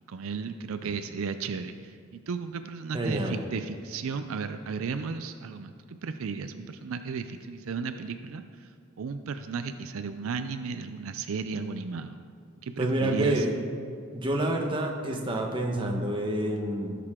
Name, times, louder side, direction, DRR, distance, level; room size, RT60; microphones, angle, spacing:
voice 1, 0.1-8.7 9.0-12.2 12.6-13.5, right 5 dB, 75° right, 9 dB, 0.4 m, -34 dB
voice 2, 2.9-3.4 12.8-13.7 14.1-17.0, right 1 dB, 25° right, 1 dB, 1.0 m, -28 dB
16.0 x 6.6 x 3.7 m, 2.3 s
head